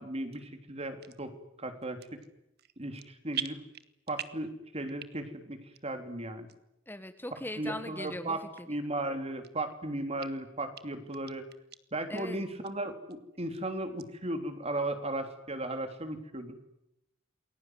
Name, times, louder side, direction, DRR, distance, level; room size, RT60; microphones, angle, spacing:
voice 1, 0.0-2.0 2.8-3.6 4.1-6.5 7.6-8.4 8.7-11.5 11.9-16.5, right 1 dB, 30° right, 7 dB, 3.6 m, -36 dB
sound 1, 1.0-1.2 1.8-2.3 2.6-3.1 3.3-4.5 4.9-5.4 5.8-5.9 6.5-6.6 7.2-7.3 8.0-8.2 8.5-8.6 9.1-9.8 10.2-10.3 10.8-10.9 11.1-11.8 12.2-12.3 12.6-12.7 13.1-13.6 14.0-14.1, right 9 dB, 55° right, 1.7 m, -41 dB
voice 2, 6.9-8.7 12.1-12.4, left 1 dB, 10° left, 8 dB, 1.6 m, -40 dB
29.0 x 22.0 x 9.5 m, 0.84 s
head